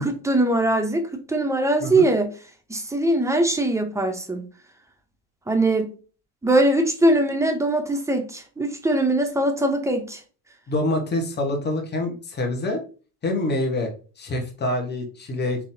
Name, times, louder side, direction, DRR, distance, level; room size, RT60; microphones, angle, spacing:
voice 1, 0.0-2.3 2.7-4.4 5.5-5.9 6.4-10.2, right 1 dB, 5° right, 0.6 m, -21 dB
voice 2, 10.7-12.8 13.2-13.9 14.2-15.6, left 1 dB, 20° left, 1.1 m, -26 dB
4.0 x 2.8 x 2.7 m
supercardioid pair, 90°, 48 cm